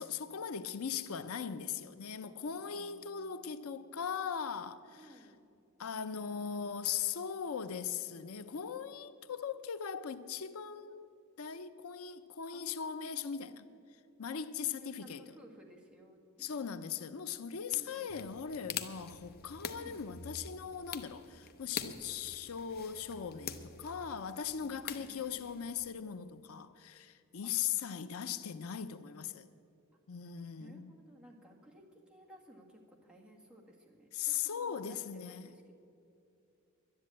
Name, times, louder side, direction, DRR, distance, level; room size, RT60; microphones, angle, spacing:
voice 1, 0.0-5.3 5.8-11.1 11.4-13.7 14.2-15.2 16.4-29.5 30.1-30.9 34.1-35.5, left 7 dB, 85° left, 0.6 m, -39 dB
voice 2, 2.6-3.7 5.0-5.4 12.5-13.8 14.6-16.7 17.7-18.2 19.7-20.2 24.8-25.3 27.4-28.6 30.6-35.7, equal, 5° right, 1.8 m, -58 dB
sound 1, 18.1-25.9, left 7 dB, 45° left, 0.8 m, -46 dB
11.5 x 10.5 x 8.7 m
head